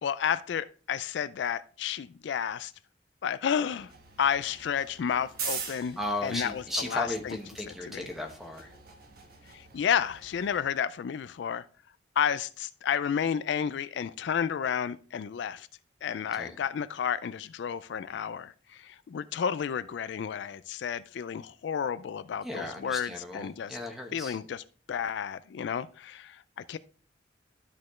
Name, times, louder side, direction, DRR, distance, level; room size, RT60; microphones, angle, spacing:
voice 1, 0.0-2.7 3.2-3.9 4.2-7.4 7.7-8.1 9.5-11.6 12.2-15.7 16.0-23.8 24.1-26.8, left 8 dB, 70° left, 0.3 m, -31 dB
sound 1, 3.8-10.6, right 5 dB, 55° right, 1.3 m, -43 dB
voice 2, 6.0-8.7 16.3-16.6 22.4-24.4, left 1 dB, ahead, 1.1 m, -36 dB
12.5 x 4.2 x 3.1 m
head